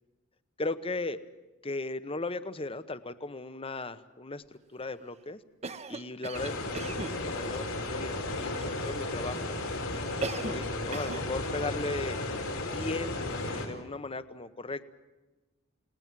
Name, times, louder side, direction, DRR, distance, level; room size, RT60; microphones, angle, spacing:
voice 1, 0.6-1.2 1.6-5.4 5.9-9.7 10.3-12.2 12.7-14.9, left 2 dB, 25° left, 13 dB, 1.0 m, -37 dB
Cough, 5.6-7.2 10.2-10.7 10.9-11.3, right 3 dB, 30° right, 1.0 m, -37 dB
sound 1, 6.3-13.7, left 2 dB, 85° left, 4.6 m, -34 dB
30.0 x 19.0 x 7.6 m, 1.1 s
head